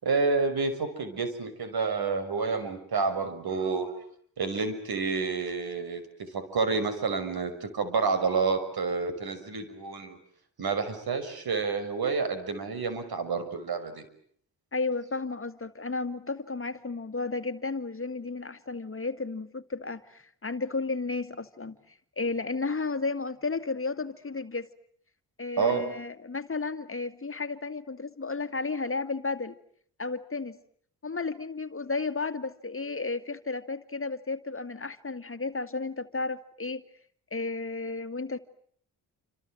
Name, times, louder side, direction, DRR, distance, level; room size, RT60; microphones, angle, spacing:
voice 1, 0.0-3.9 4.4-10.2 10.6-14.0 25.6-25.8, right 4 dB, 60° right, 11 dB, 6.0 m, -29 dB
voice 2, 14.7-21.8 22.2-24.7 25.4-29.6 30.0-30.6 31.0-36.8 37.3-38.4, left 3 dB, 30° left, 10 dB, 2.1 m, -33 dB
29.0 x 26.0 x 7.8 m, 0.64 s
supercardioid pair, 50°, 41 cm